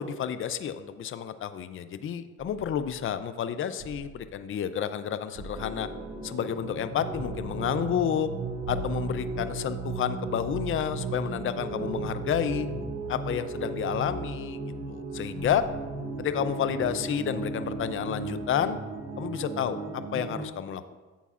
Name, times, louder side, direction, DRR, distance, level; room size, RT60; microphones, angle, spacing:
voice 1, 0.0-5.9 6.2-8.3 8.7-12.7 13.1-14.6 14.9-15.6 16.2-18.8 19.2-21.0, left 9 dB, 45° left, 11 dB, 0.5 m, -30 dB
sound 1, 2.4-3.2 3.8-4.4 5.3-6.4 7.1-7.7 8.6-9.7 10.4-11.0 12.2-13.3 13.9-14.5 15.4-16.0, right 1 dB, 85° right, 2.1 m, -44 dB
sound 2, 5.5-20.4, right 3 dB, 60° right, 1.2 m, -35 dB
11.0 x 8.1 x 2.5 m, 1.3 s
cardioid pair, 90°, 30 cm